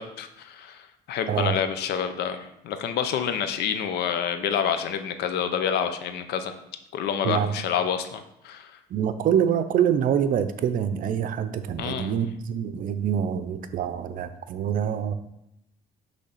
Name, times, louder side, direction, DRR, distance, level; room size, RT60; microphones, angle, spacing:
voice 1, 0.0-6.5 6.9-8.8 11.8-12.1, left 8 dB, 75° left, 9 dB, 0.7 m, -28 dB
voice 2, 1.3-1.6 7.2-7.5 8.9-15.1, right 8 dB, 55° right, 10 dB, 0.6 m, -25 dB
6.4 x 3.3 x 5.7 m, 0.82 s
cardioid pair, 110°, 17 cm